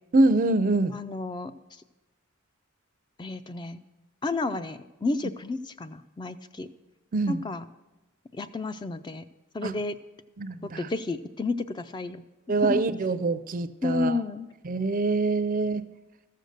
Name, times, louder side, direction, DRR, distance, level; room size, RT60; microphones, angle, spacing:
voice 1, 0.1-0.9 7.1-7.4 9.6-9.7 10.4-10.9 12.5-14.1 14.6-15.8, right 2 dB, 40° right, 13 dB, 0.4 m, -24 dB
voice 2, 0.9-1.5 3.2-3.8 4.2-6.7 7.3-7.6 8.3-9.2 9.5-10.0 10.6-12.2 12.6-12.8 13.8-14.5, left 3 dB, 20° left, 12 dB, 0.3 m, -31 dB
13.5 x 6.6 x 6.5 m, 1.1 s
head